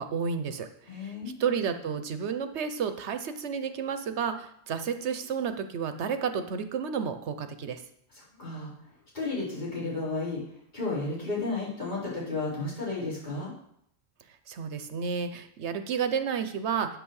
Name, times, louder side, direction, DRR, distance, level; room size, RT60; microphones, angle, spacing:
voice 1, 0.0-0.7 1.0-1.1 1.4-7.8 14.5-17.0, right 6 dB, 85° right, 9 dB, 1.1 m, -31 dB
voice 2, 0.9-1.3 8.1-8.7 9.1-10.4 10.7-13.5, left 3 dB, 45° left, -7 dB, 4.0 m, -32 dB
8.6 x 6.2 x 6.4 m, 0.72 s
omnidirectional pair, 1.1 m